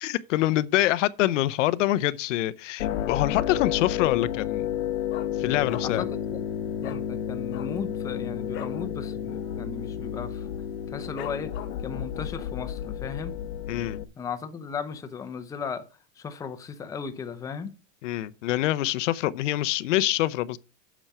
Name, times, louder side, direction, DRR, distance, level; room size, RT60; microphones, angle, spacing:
voice 1, 0.0-4.7 5.4-6.0 13.7-14.0 18.0-20.6, left 15 dB, 70° left, 0.7 m, -25 dB
sound 1, 2.8-14.0, left 9 dB, 90° left, 1.1 m, -31 dB
Dog, 3.6-4.0 4.3-4.4 4.7-6.1 6.4-6.5 6.8-7.0 7.4-8.8 9.2-9.4 9.6-10.0 10.5-10.6 11.2-12.0 12.4-12.5, left 10 dB, 30° left, 1.1 m, -41 dB
voice 2, 5.8-6.4 6.8-10.5 10.9-11.5 11.8-13.3 14.2-15.9 16.2-17.7, left 6 dB, 10° left, 0.6 m, -36 dB
9.1 x 6.2 x 5.5 m
supercardioid pair, 160°, 39 cm